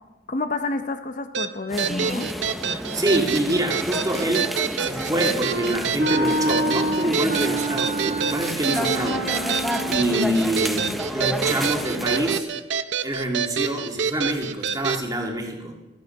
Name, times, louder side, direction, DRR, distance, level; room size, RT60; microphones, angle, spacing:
voice 1, 0.3-2.3, left 3 dB, 45° left, 8 dB, 0.7 m, -29 dB
sound 1, 1.3-15.0, right 7 dB, 80° right, 0.6 m, -27 dB
sound 2, 1.7-12.4, equal, ahead, 0.6 m, -31 dB
voice 2, 2.9-9.6 9.9-12.5 13.0-15.8, right 1 dB, 20° right, 1 dB, 1.9 m, -26 dB
Wind instrument woodwind instrument, 5.4-10.2, right 1 dB, 55° right, 1.7 m, -27 dB
14.5 x 13.0 x 5.4 m, 1.1 s
head